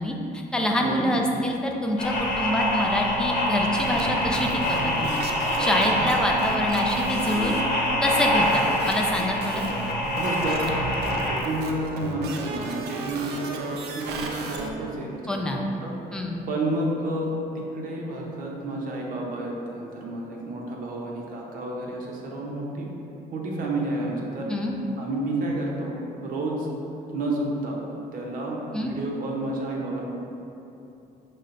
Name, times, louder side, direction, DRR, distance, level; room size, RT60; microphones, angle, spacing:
voice 1, 0.0-5.2 5.6-7.6 8.0-9.6 15.3-15.6 16.1-16.4 24.5-24.8 28.7-28.9, left 1 dB, 5° left, 0 dB, 0.4 m, -26 dB
voice 2, 0.8-1.1 10.1-10.6 11.0-13.7 13.9-16.2 16.5-22.9 23.3-24.5 25.0-26.7 27.1-27.8 28.1-30.0, right 1 dB, 55° right, -2 dB, 0.7 m, -30 dB
sound 1, 2.0-11.4, left 1 dB, 50° left, 0.9 m, -25 dB
sound 2, 3.8-14.7, right 3 dB, 80° right, 0.4 m, -34 dB
6.2 x 2.2 x 2.5 m, 2.9 s
cardioid pair, 110°, 17 cm